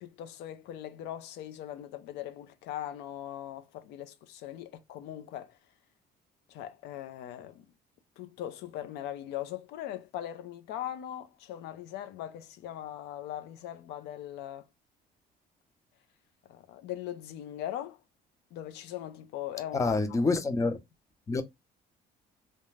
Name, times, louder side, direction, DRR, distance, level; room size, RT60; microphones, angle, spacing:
voice 1, 0.0-5.6 6.5-7.7 8.2-14.7 16.5-18.0 18.5-20.2, left 11 dB, 85° left, 0.5 m, -40 dB
voice 2, 19.7-20.8 21.3-21.4, left 3 dB, 20° left, 0.5 m, -27 dB
2.4 x 2.2 x 3.1 m
cardioid pair, 110°, 17 cm